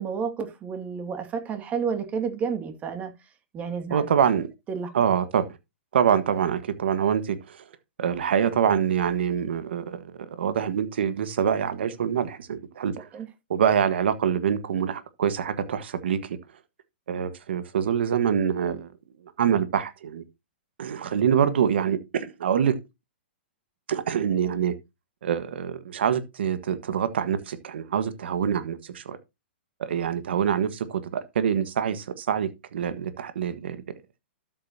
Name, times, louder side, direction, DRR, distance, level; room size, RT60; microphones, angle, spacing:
voice 1, 0.0-3.1 3.5-4.0 4.7-4.9 13.1-13.3, right 6 dB, 25° right, 2.4 m, -30 dB
voice 2, 3.9-4.5 4.9-5.4 5.9-7.6 8.0-13.1 13.5-16.4 17.1-18.9 19.4-20.2 20.8-22.7 23.9-24.7 25.2-29.2 29.8-33.8, right 8 dB, 70° right, 1.5 m, -25 dB
12.5 x 7.8 x 2.8 m
hypercardioid pair, 130°, 6 cm